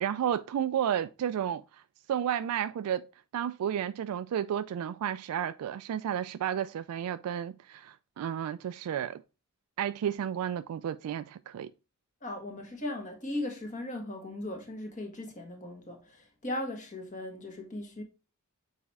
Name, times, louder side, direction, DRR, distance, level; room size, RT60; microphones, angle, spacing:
voice 1, 0.0-1.8 2.1-3.1 3.3-9.2 9.8-11.7, right 9 dB, 85° right, 0.3 m, -32 dB
voice 2, 12.2-18.0, left 1 dB, 35° left, 1.5 m, -38 dB
7.1 x 4.2 x 3.4 m
head